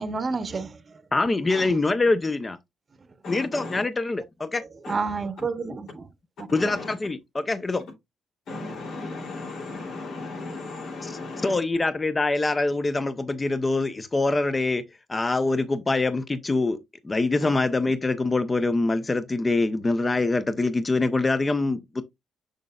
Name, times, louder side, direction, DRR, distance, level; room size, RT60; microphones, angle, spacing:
voice 1, 0.0-1.0 1.5-1.7 4.9-6.1 6.4-6.5, right 4 dB, 35° right, 0.9 m, -30 dB
voice 2, 1.1-2.6 3.3-4.6 6.5-7.8 11.0-11.2 11.4-14.8 15.1-16.8 17.0-22.0, left 3 dB, 25° left, 0.6 m, -24 dB
voice 3, 3.2-3.8 4.8-4.9 6.5-6.9 8.5-11.5 17.4-17.5, left 3 dB, 70° left, 2.9 m, -36 dB
6.5 x 6.3 x 2.3 m
cardioid pair, 90°, 0 cm